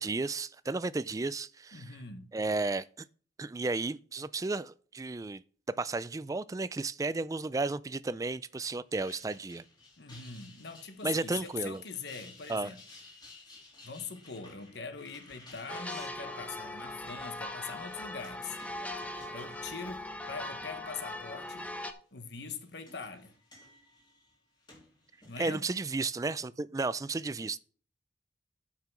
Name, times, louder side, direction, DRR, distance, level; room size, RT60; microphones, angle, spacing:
voice 1, 0.0-2.0 2.3-2.9 3.4-5.4 5.7-9.6 11.0-11.8 12.5-12.7 25.4-27.6, right 3 dB, 20° right, 0.3 m, -33 dB
voice 2, 1.7-2.3 10.0-12.8 13.8-18.6 19.3-21.7 22.1-23.3 25.3-25.7, left 5 dB, 65° left, 1.1 m, -42 dB
sound 1, 8.9-20.5 20.9-21.5 22.3-25.5, left 3 dB, 25° left, 2.9 m, -56 dB
sound 2, 15.7-21.9, left 1 dB, 10° left, 0.8 m, -40 dB
8.8 x 5.7 x 6.0 m
head